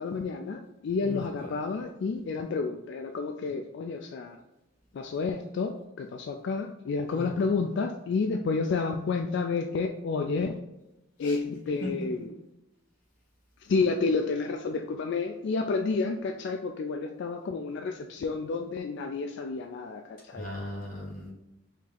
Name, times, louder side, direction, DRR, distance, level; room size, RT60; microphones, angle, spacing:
voice 1, 0.0-4.4 4.9-5.7 6.0-10.6 11.2-12.4 13.6-20.5, left 4 dB, 60° left, 4 dB, 0.3 m, -30 dB
voice 2, 7.1-7.5 11.2-11.4 11.8-11.9 20.3-21.3, left 1 dB, 40° left, -3 dB, 1.4 m, -38 dB
4.6 x 3.0 x 3.7 m, 0.91 s
head